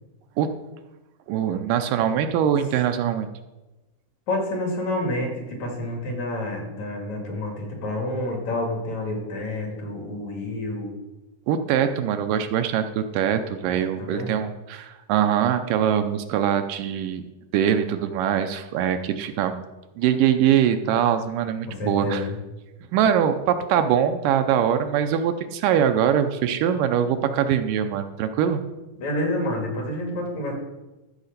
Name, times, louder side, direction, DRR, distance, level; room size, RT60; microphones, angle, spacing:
voice 1, 1.3-3.3 11.5-17.2 17.5-19.6 20.0-22.3 22.9-28.6, right 9 dB, 80° right, 8 dB, 2.2 m, -22 dB
voice 2, 4.3-10.9 13.7-14.3 21.7-22.4 29.0-30.5, left 1 dB, 55° left, 0 dB, 3.2 m, -29 dB
13.0 x 4.8 x 6.6 m, 1.1 s
omnidirectional pair, 3.9 m